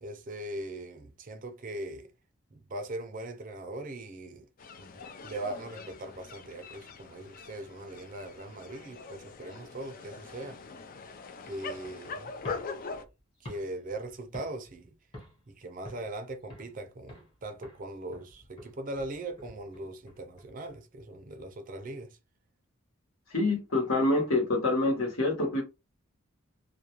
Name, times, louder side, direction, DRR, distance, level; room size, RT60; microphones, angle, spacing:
voice 1, 0.0-2.1 2.5-4.5 4.8-10.6 11.4-12.3 13.4-14.9 15.5-22.2, right 1 dB, 40° right, 0.5 m, -40 dB
sound 1, 4.6-13.0, left 4 dB, 40° left, 0.3 m, -43 dB
sound 2, 12.3-14.8 15.1-15.5 15.8-16.8 17.1-17.4 17.6-20.7, left 1 dB, 25° left, 1.0 m, -49 dB
voice 2, 23.3-25.6, left 2 dB, 75° left, 1.1 m, -26 dB
2.3 x 2.2 x 2.9 m
head